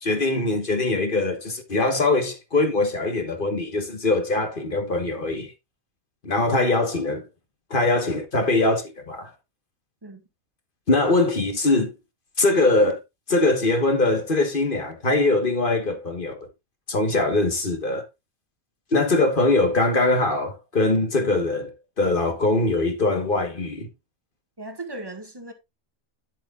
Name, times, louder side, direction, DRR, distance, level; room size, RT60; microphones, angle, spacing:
voice 1, 0.0-5.5 6.2-7.3 7.7-9.3 10.9-11.9 12.4-13.0 13.3-16.5 16.9-18.0 18.9-23.9, left 2 dB, 40° left, 1.5 m, -22 dB
voice 2, 24.6-25.5, right 2 dB, 20° right, 1.6 m, -37 dB
10.5 x 7.5 x 2.4 m
omnidirectional pair, 1.4 m